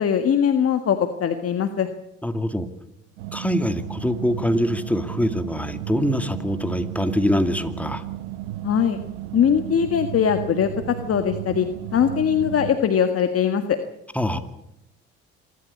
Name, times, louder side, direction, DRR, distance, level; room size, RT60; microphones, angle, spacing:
voice 1, 0.0-1.9 8.6-9.0 9.3-11.7 11.9-13.8, left 8 dB, 50° left, 7 dB, 1.7 m, -21 dB
voice 2, 2.2-2.7 3.3-8.0 14.1-14.4, equal, 5° left, 8 dB, 2.4 m, -24 dB
sound 1, 3.2-12.8, right 13 dB, 90° right, 1.1 m, -34 dB
26.0 x 13.0 x 8.5 m, 0.86 s
supercardioid pair, 75°, 29 cm